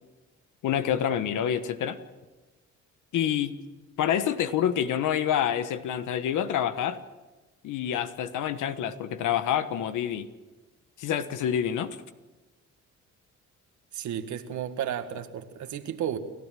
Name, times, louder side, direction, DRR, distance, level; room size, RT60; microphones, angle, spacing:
voice 1, 0.6-2.0 3.1-3.5 4.0-7.0 7.6-10.3 11.0-12.0, left 9 dB, 80° left, 11 dB, 1.4 m, -27 dB
voice 2, 13.9-16.2, right 9 dB, 70° right, 8 dB, 1.8 m, -33 dB
30.0 x 13.5 x 7.6 m, 1.2 s
cardioid pair, 90°, 30 cm